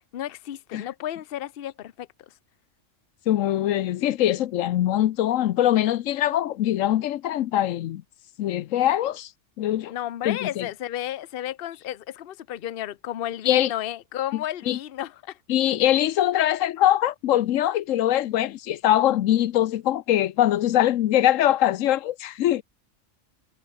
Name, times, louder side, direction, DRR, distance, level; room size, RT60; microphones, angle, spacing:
voice 1, 0.1-2.3 9.9-15.4, left 12 dB, 55° left, 0.8 m, -33 dB
voice 2, 3.3-8.0 8.4-9.3 9.6-9.9 10.2-10.7 13.5-13.7 14.3-14.8 15.5-22.6, left 12 dB, 85° left, 1.0 m, -22 dB
omnidirectional pair, 1.3 m